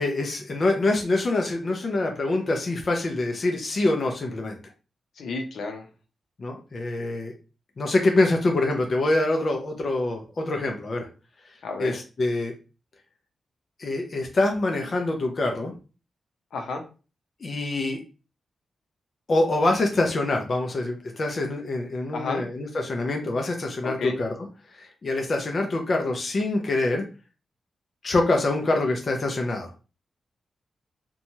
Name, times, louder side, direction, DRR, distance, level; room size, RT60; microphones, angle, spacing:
voice 1, 0.0-4.6 6.4-7.3 7.8-11.1 11.8-12.5 13.8-15.7 17.4-18.0 19.3-24.3 24.8-27.0 28.0-29.7, left 2 dB, 35° left, 2 dB, 0.4 m, -25 dB
voice 2, 5.2-5.8 11.6-12.0 16.5-16.8 22.1-22.4 23.8-24.2, left 3 dB, 80° left, 3 dB, 0.6 m, -31 dB
2.9 x 2.2 x 2.7 m, 0.33 s
wide cardioid pair, 160°, 0 cm